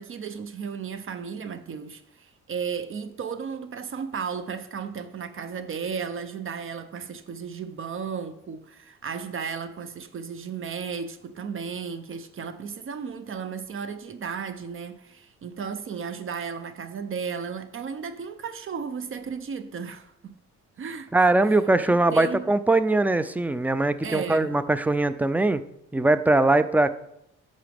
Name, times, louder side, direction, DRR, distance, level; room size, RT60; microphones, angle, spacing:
voice 1, 0.0-20.4 20.8-21.6 22.1-22.5 24.0-24.5, right 6 dB, 45° right, 0.7 m, -34 dB
voice 2, 21.1-25.6 25.9-26.9, right 2 dB, 5° right, 0.4 m, -21 dB
8.8 x 6.6 x 3.5 m
cardioid pair, 90°, 30 cm